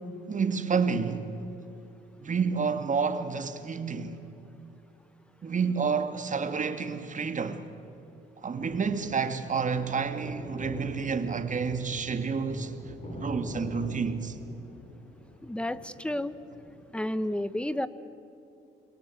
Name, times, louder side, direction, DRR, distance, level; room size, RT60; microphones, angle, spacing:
voice 1, 0.3-1.3 2.2-4.2 5.4-7.7 8.4-12.7 13.2-14.4, right 5 dB, 40° right, 2.1 m, -29 dB
sound 1, 8.4-16.9, left 1 dB, 35° left, 6.1 m, -43 dB
voice 2, 15.4-16.4 16.9-17.9, left 1 dB, 5° left, 1.1 m, -31 dB
29.5 x 22.5 x 8.6 m
cardioid pair, 90°, 20 cm